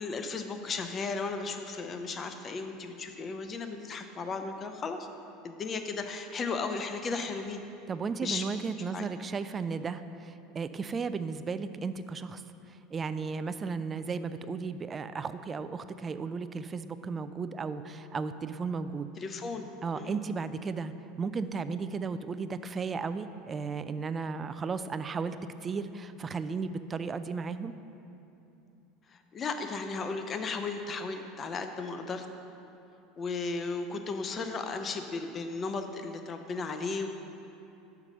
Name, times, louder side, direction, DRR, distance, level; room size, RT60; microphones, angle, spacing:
voice 1, 0.0-5.1 5.4-7.6 8.2-8.4 8.9-9.1 19.2-19.7 19.9-20.2 29.1-32.3 33.2-37.1, left 4 dB, 30° left, 7 dB, 0.6 m, -35 dB
voice 2, 7.9-12.4 12.7-19.1 19.8-25.4 25.6-27.7, right 5 dB, 25° right, 12 dB, 0.3 m, -35 dB
5.9 x 5.9 x 6.6 m, 2.8 s
figure-of-eight pair, 75°, 0 cm